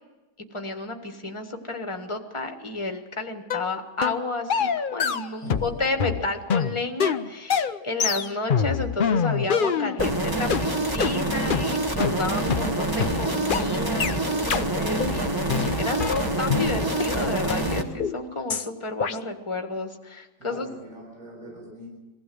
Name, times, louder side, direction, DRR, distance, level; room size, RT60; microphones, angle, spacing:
voice 1, 0.5-20.7, left 2 dB, 20° left, 5 dB, 1.5 m, -31 dB
sound 1, 3.5-3.7 4.0-4.2 4.5-5.7 6.0-10.1 10.5-10.6 11.0-11.1 11.5-11.6 12.0-12.1 12.5-12.6 13.0-13.1 13.5-13.6 14.0-14.1 14.5-14.6 15.0-15.2 15.5-16.7 17.0-17.1 17.5-17.6 18.0-18.2 18.5-18.7 19.0-19.2, left 7 dB, 50° left, 0.6 m, -25 dB
voice 2, 5.3-5.9 20.4-21.9, equal, 50° right, -4 dB, 7.2 m, -42 dB
sound 2, 10.0-17.8, right 1 dB, 15° right, 1.4 m, -26 dB
22.5 x 16.0 x 7.8 m, 1.1 s
omnidirectional pair, 1.8 m